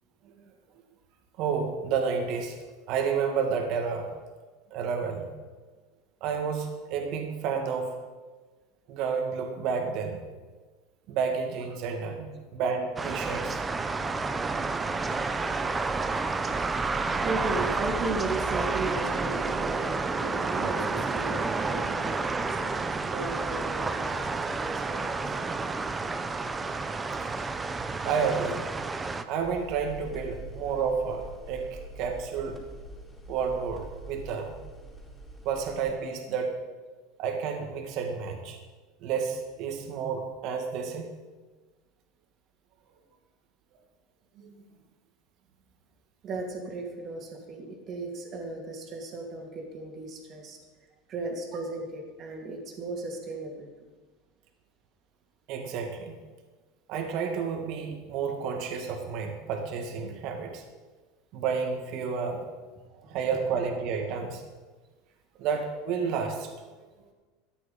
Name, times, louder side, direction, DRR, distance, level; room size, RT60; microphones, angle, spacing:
voice 1, 1.4-2.6 2.9-4.1 4.7-5.3 6.2-8.0 8.9-10.2 11.1-13.6 28.0-28.7 29.3-32.6 33.3-34.6 35.4-36.5 37.2-38.6 39.0-41.1 44.4-44.7 55.5-56.2 56.9-60.6 61.3-62.4 63.1-64.4 65.4-66.7, right 6 dB, 55° right, 4 dB, 2.1 m, -30 dB
sound 1, 13.0-29.2, right 3 dB, 15° right, 0.7 m, -30 dB
voice 2, 17.2-22.7 23.1-25.4 27.4-27.5 46.2-50.6 51.1-53.7, right 3 dB, 35° right, 2 dB, 2.7 m, -36 dB
sound 2, 29.4-35.9, right 1 dB, 5° left, 4.4 m, -44 dB
13.5 x 10.5 x 5.5 m, 1.3 s
supercardioid pair, 135°, 0 cm